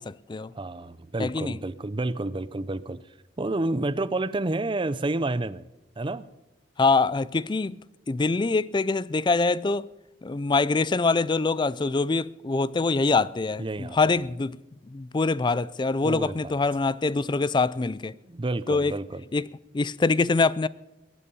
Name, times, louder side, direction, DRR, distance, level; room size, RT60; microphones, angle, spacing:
voice 1, 0.0-0.5 1.2-1.6 6.8-7.8 8.1-9.9 10.2-14.6 14.9-18.1 18.7-18.9 19.3-20.7, left 3 dB, 25° left, 0.4 m, -24 dB
voice 2, 0.5-3.0 3.4-5.6 6.0-6.2 13.6-14.0 16.0-16.6 18.3-19.2, right 2 dB, 25° right, 0.6 m, -29 dB
22.5 x 8.5 x 5.5 m
head